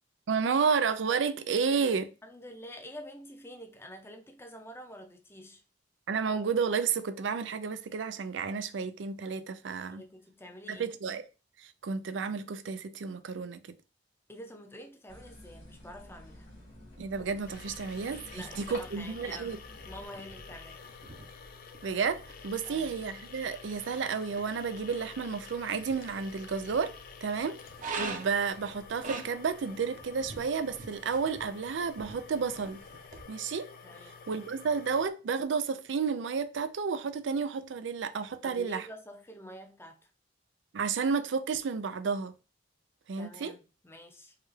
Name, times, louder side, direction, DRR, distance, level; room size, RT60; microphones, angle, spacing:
voice 1, 0.3-2.1 6.1-10.0 10.7-11.2 11.6-13.6 17.0-19.6 21.8-26.9 27.2-27.6 27.9-32.8 33.3-33.7 34.3-38.9 40.7-42.3 43.1-43.5, right 5 dB, 80° right, 0.4 m, -31 dB
voice 2, 2.2-5.6 9.9-10.9 14.3-16.6 18.3-19.6 19.9-20.8 22.6-22.9 33.8-34.2 38.4-40.1 43.2-44.3, equal, 15° left, 0.6 m, -47 dB
sound 1, 15.1-20.1, left 1 dB, 70° left, 2.1 m, -49 dB
sound 2, 17.5-35.1, left 6 dB, 50° left, 0.4 m, -50 dB
sound 3, 20.1-33.2, right 4 dB, 45° right, 0.7 m, -46 dB
4.8 x 2.3 x 3.1 m
head